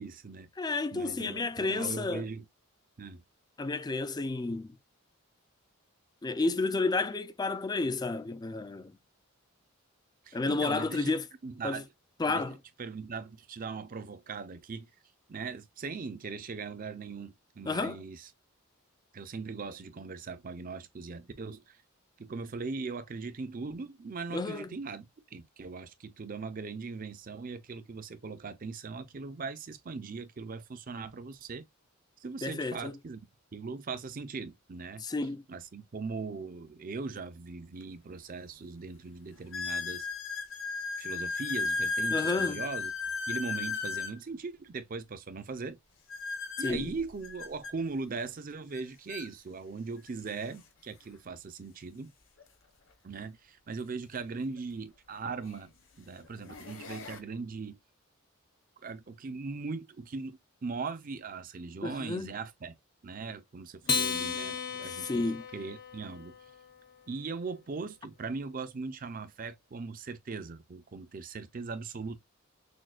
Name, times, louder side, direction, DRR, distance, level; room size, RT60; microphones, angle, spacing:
voice 1, 0.0-0.5 0.9-2.5 3.0-3.2 10.3-11.1 11.4-11.9 12.3-14.9 15.3-18.3 19.1-21.8 22.2-31.6 32.2-33.2 33.5-35.0 35.5-40.1 41.0-42.9 43.3-45.8 46.6-52.1 53.0-55.7 56.0-57.8 58.8-62.7 63.0-66.3 67.1-72.2, right 4 dB, 40° right, 0.5 m, -39 dB
voice 2, 0.6-2.3 3.6-4.7 6.2-8.9 10.3-11.3 11.6-11.8 12.2-12.6 17.7-18.0 24.3-24.8 32.4-33.0 35.0-35.4 42.1-42.6 46.6-46.9 61.8-62.3 64.9-65.4, left 3 dB, 20° left, 0.3 m, -31 dB
sound 1, 37.8-37.9 38.5-38.6 39.5-44.2 46.1-47.7 48.7-48.8 49.1-49.3 50.1-50.2 52.4-52.5 54.6-54.7 55.4-55.7 56.2-57.2, left 4 dB, 65° left, 1.1 m, -35 dB
Acoustic guitar, 63.8-66.5, left 5 dB, 45° left, 0.8 m, -34 dB
6.3 x 2.2 x 2.3 m
head